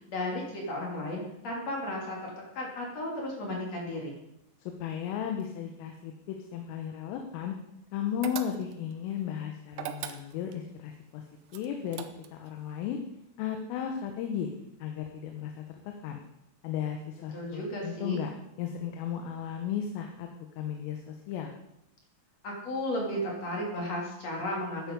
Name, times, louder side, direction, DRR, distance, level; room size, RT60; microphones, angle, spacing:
voice 1, 0.1-4.2 17.3-18.2 22.4-24.9, left 1 dB, 40° left, -1 dB, 3.1 m, -34 dB
voice 2, 4.8-7.6 7.9-11.2 11.5-12.1 12.3-13.0 13.4-14.5 14.8-16.2 16.6-18.3 18.6-20.3 20.6-21.5, left 9 dB, 85° left, 4 dB, 3.7 m, -35 dB
sound 1, 8.2-8.9 9.7-10.6 11.5-12.5, right 11 dB, 85° right, 2.3 m, -39 dB
14.0 x 9.5 x 5.3 m, 0.83 s
omnidirectional pair, 5.7 m